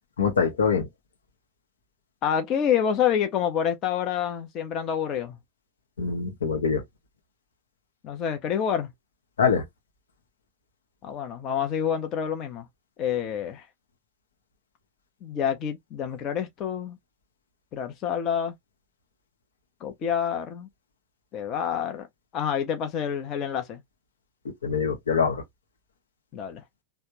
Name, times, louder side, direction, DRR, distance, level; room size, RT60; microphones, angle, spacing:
voice 1, 0.2-0.9 6.0-6.8 9.4-9.6 24.6-25.4, left 6 dB, 65° left, 0.9 m, -24 dB
voice 2, 2.2-5.4 8.0-8.9 11.0-12.7 13.0-13.6 15.2-17.0 17.7-18.5 19.8-20.7 21.3-22.1 22.3-23.8 26.3-26.6, left 8 dB, 35° left, 0.7 m, -27 dB
3.3 x 2.1 x 2.9 m
figure-of-eight pair, 90°, 0 cm